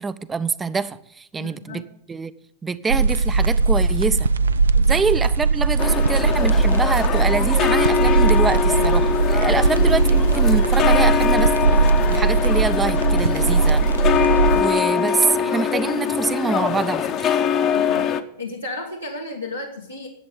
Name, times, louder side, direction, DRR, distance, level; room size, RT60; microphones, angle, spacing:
voice 1, 0.0-2.3 2.6-4.3 4.9-11.5 12.1-13.8 14.5-17.4, right 5 dB, 15° right, 0.6 m, -25 dB
voice 2, 1.4-1.9 4.7-5.0 9.5-9.9 17.7-18.1 18.4-20.1, left 2 dB, 90° left, 1.6 m, -34 dB
sound 1, 2.9-14.6, right 4 dB, 70° right, 0.4 m, -19 dB
sound 2, 5.8-18.2, left 7 dB, 35° left, 0.9 m, -23 dB
11.0 x 7.8 x 8.5 m
figure-of-eight pair, 90°, 0 cm